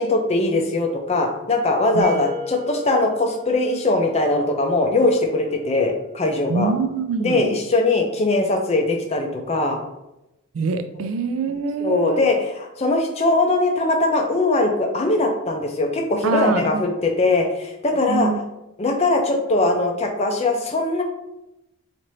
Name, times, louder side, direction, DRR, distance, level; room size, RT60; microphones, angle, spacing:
voice 1, 0.0-6.7 7.2-9.8 10.9-11.1 11.8-18.3 18.8-21.0, left 2 dB, 30° left, 3 dB, 0.4 m, -21 dB
sound 1, 2.0-4.9, left 2 dB, 30° right, 0.7 m, -36 dB
voice 2, 6.5-7.5 10.5-12.2 16.2-16.9 18.1-18.4, right 4 dB, 70° right, 10 dB, 0.3 m, -24 dB
4.2 x 2.5 x 3.1 m, 0.91 s
head